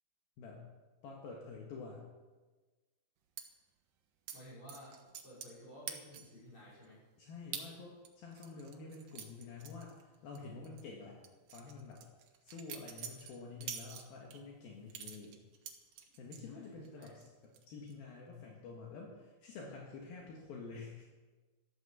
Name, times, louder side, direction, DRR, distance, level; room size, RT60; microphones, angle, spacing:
voice 1, 1.0-2.1 7.2-11.2 11.5-12.0 12.4-15.4 16.2-21.1, left 4 dB, 70° left, -1 dB, 3.3 m, -49 dB
sound 1, 3.4-3.5 4.3-4.4 4.7-5.6 5.9-6.4 6.8-6.9 7.5-7.7 8.1-10.4 10.6-10.8 11.2-14.4 14.9-16.4 16.8-17.3 17.5-17.9, right 8 dB, 65° right, 2.7 m, -46 dB
voice 2, 4.3-7.0 16.1-16.2 16.5-17.1, equal, 30° left, -6 dB, 6.0 m, -54 dB
13.5 x 12.5 x 7.3 m, 1.3 s
omnidirectional pair, 4.7 m